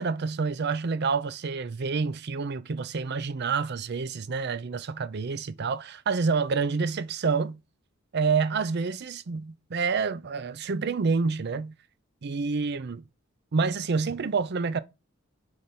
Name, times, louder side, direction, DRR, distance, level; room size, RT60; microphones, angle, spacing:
voice 1, 0.0-7.6 8.1-11.7 12.2-13.0 13.5-14.8, right 4 dB, 55° right, 0.5 m, -28 dB
5.0 x 4.1 x 5.8 m
head